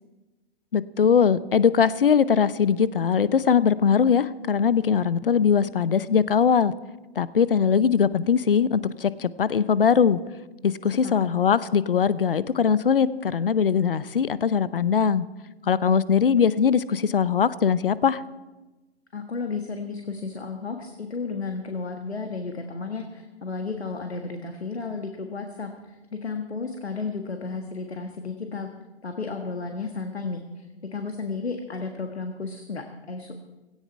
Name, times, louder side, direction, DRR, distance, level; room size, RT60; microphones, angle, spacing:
voice 1, 0.7-6.7 7.2-10.2 10.6-15.3 15.7-18.2, left 7 dB, 55° left, 18 dB, 0.8 m, -21 dB
voice 2, 19.1-28.7 29.0-33.3, left 4 dB, 70° left, 5 dB, 1.7 m, -33 dB
17.0 x 17.0 x 4.5 m, 1.1 s
figure-of-eight pair, 125°, 33 cm